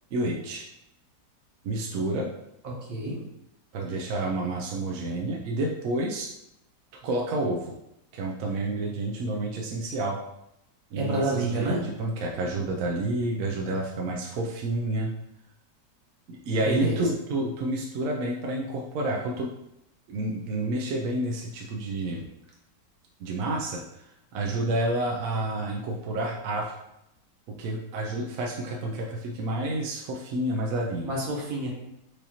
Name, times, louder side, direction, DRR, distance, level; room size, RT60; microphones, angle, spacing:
voice 1, 0.1-0.6 1.6-2.3 3.7-6.3 7.0-7.7 8.1-10.2 10.9-15.1 16.3-19.5 20.1-22.2 23.2-26.7 27.5-31.1, right 2 dB, 75° right, -1 dB, 0.8 m, -29 dB
voice 2, 2.6-3.2 11.0-11.8 16.6-17.1 31.0-31.7, right 2 dB, 55° right, -3 dB, 1.3 m, -29 dB
4.8 x 2.7 x 2.8 m, 0.83 s
omnidirectional pair, 1.9 m